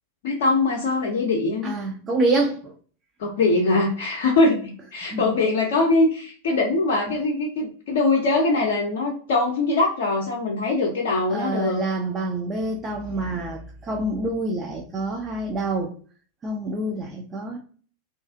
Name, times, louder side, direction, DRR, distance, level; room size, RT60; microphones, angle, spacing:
voice 1, 0.2-1.7 3.2-11.8, left 3 dB, 55° left, 0.5 m, -22 dB
voice 2, 1.6-2.7 5.0-5.4 11.3-15.9 16.4-17.6, right 2 dB, 25° right, 0.4 m, -27 dB
2.5 x 2.3 x 2.3 m
figure-of-eight pair, 90°, 0 cm